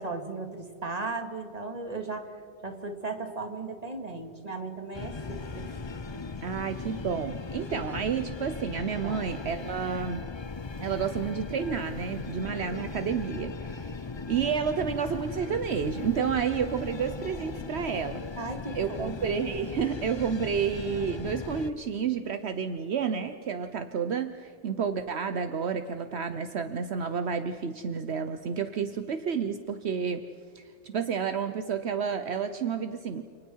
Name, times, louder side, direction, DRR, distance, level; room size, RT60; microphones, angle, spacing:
voice 1, 0.0-2.4 2.6-5.8 7.7-7.8 9.0-9.2 18.4-19.1, right 3 dB, 35° right, 4 dB, 2.3 m, -36 dB
sound 1, 4.9-21.7, left 4 dB, 30° left, 0.6 m, -38 dB
voice 2, 6.4-10.3 10.8-18.2 18.7-30.3 30.5-33.2, right 6 dB, 70° right, 9 dB, 1.2 m, -30 dB
30.0 x 29.0 x 4.7 m, 2.1 s
omnidirectional pair, 1.2 m